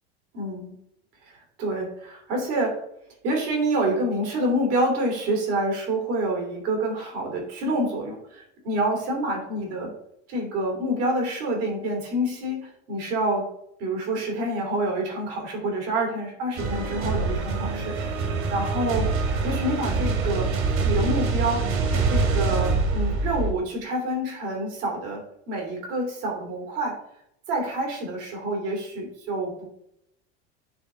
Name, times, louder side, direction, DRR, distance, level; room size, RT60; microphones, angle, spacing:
voice 1, 0.3-0.7 1.6-2.8 3.2-9.9 10.3-13.4 13.8-17.9 18.2-19.1 19.4-20.5 20.8-21.6 22.1-25.2 25.5-26.9 27.5-29.7, right 1 dB, 75° right, 1 dB, 2.6 m, -27 dB
sound 1, 16.6-23.5, right 4 dB, 55° right, 1.9 m, -25 dB
9.6 x 3.6 x 3.6 m, 0.76 s
hypercardioid pair, 80°, 34 cm